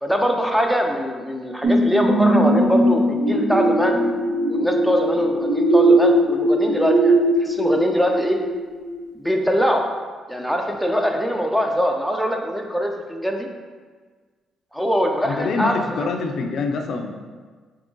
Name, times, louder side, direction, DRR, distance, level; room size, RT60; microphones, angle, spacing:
voice 1, 0.0-4.0 4.5-8.4 9.2-9.8 10.3-13.5 14.7-16.1, equal, ahead, 2 dB, 0.4 m, -22 dB
sound 1, 1.6-9.0 9.5-9.6, right 1 dB, 80° right, 0.7 m, -19 dB
voice 2, 15.2-17.1, left 4 dB, 60° left, 3 dB, 0.4 m, -25 dB
3.7 x 2.9 x 3.8 m, 1.5 s
cardioid pair, 120°, 0 cm